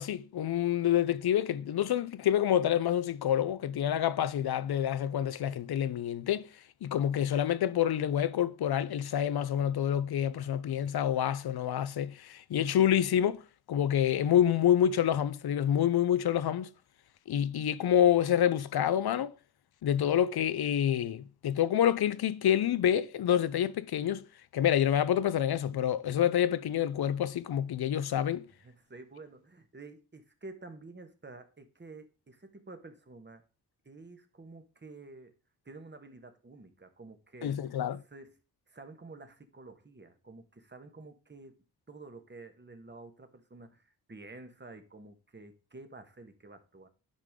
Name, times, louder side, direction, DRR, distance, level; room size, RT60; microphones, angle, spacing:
voice 1, 0.0-6.5 6.8-13.4 13.7-16.7 17.3-19.3 19.8-24.2 24.5-28.5 37.4-38.0, left 10 dB, 80° left, 0.6 m, -27 dB
voice 2, 28.6-33.4 33.8-35.3 35.6-37.6 38.0-38.4 38.7-41.6 41.9-46.9, right 3 dB, 30° right, 1.3 m, -50 dB
10.0 x 5.0 x 3.7 m
cardioid pair, 65°, 38 cm